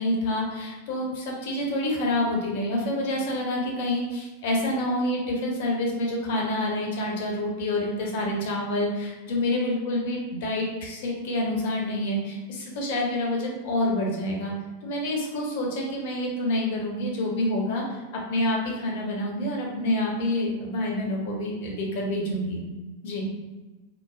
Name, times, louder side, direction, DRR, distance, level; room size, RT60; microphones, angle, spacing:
voice 1, 0.0-14.5 14.8-18.0 18.3-22.6 23.0-23.3, left 1 dB, 50° left, -1 dB, 0.6 m, -27 dB
3.0 x 2.0 x 2.3 m, 1.2 s
figure-of-eight pair, 90°, 0 cm